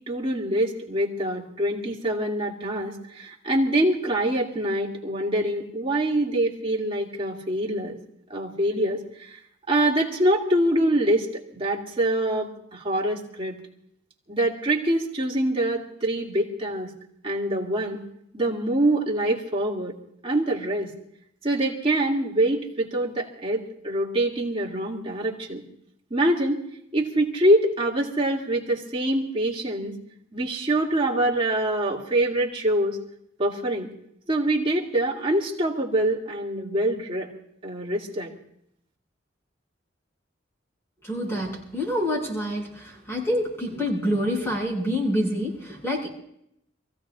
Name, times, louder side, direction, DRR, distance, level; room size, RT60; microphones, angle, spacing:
voice 1, 0.1-8.0 8.3-9.4 9.7-13.5 14.3-16.9 17.2-18.0 18.3-19.9 20.2-20.9 21.4-25.6 26.1-26.6 26.9-29.9 30.3-33.0 33.4-33.9 34.3-37.3 37.6-38.3, right 1 dB, 30° right, -3 dB, 2.4 m, -25 dB
voice 2, 41.0-46.1, equal, 15° left, -3 dB, 6.1 m, -27 dB
28.0 x 16.0 x 2.5 m, 0.75 s
head